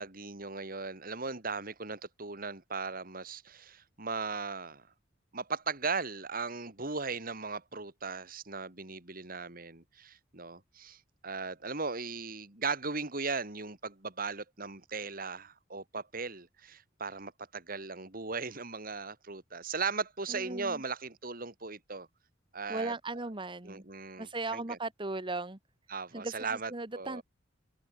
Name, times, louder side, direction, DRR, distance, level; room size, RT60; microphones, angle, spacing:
voice 1, 0.0-4.8 5.3-11.0 11.2-22.1 22.5-23.3 23.6-24.8 25.9-27.2, right 4 dB, 50° right, 3.1 m, -38 dB
voice 2, 20.3-20.8 22.7-23.8 24.2-25.6 26.1-27.2, right 2 dB, 25° right, 1.4 m, -37 dB
head